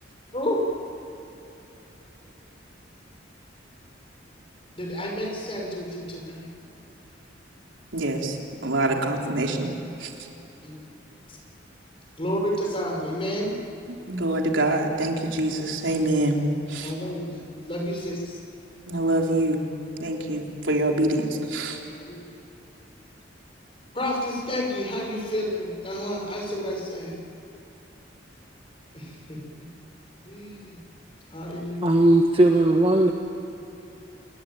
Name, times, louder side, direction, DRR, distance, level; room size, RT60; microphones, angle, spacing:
voice 1, 0.3-0.6 4.8-6.5 8.8-8.9 10.0-10.1 10.6-10.9 11.3-11.4 12.2-13.5 16.8-18.4 22.1-22.2 23.9-27.2 28.9-29.7 30.3-30.8 31.3-32.1, equal, 30° left, 0 dB, 6.0 m, -30 dB
voice 2, 7.9-8.4 8.6-10.1 14.1-16.4 16.7-16.9 18.9-19.6 20.0-21.8, right 1 dB, 85° right, 1 dB, 3.7 m, -25 dB
voice 3, 31.8-33.1, right 1 dB, 30° right, 2 dB, 1.4 m, -18 dB
28.5 x 21.5 x 9.2 m, 3.0 s
head